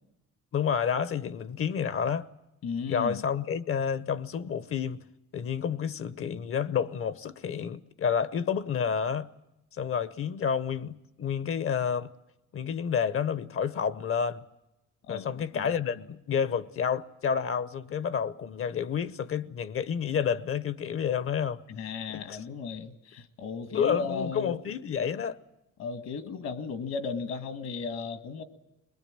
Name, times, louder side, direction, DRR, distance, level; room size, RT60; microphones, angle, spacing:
voice 1, 0.5-2.3 2.9-5.0 5.3-9.3 9.7-12.1 12.5-14.4 15.1-22.4 23.7-25.4, left 7 dB, 45° left, 0.9 m, -30 dB
voice 2, 2.6-3.2 15.1-15.7 21.7-24.5 25.8-28.4, left 5 dB, 65° left, 1.7 m, -35 dB
21.5 x 21.0 x 8.8 m
cardioid pair, 130°, 29 cm